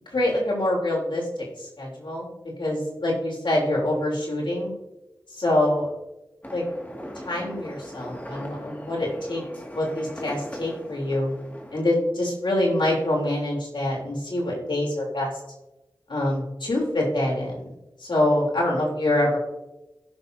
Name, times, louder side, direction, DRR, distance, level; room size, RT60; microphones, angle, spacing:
voice 1, 0.1-2.3 2.6-4.7 5.3-5.9 6.5-6.6 7.2-9.4 9.7-11.3 11.7-15.3 16.1-19.4, left 1 dB, 80° left, -3 dB, 3.3 m, -25 dB
sound 1, 6.4-11.8, equal, 20° left, 2.0 m, -39 dB
16.5 x 6.4 x 2.7 m, 0.99 s
cardioid pair, 40°, 8 cm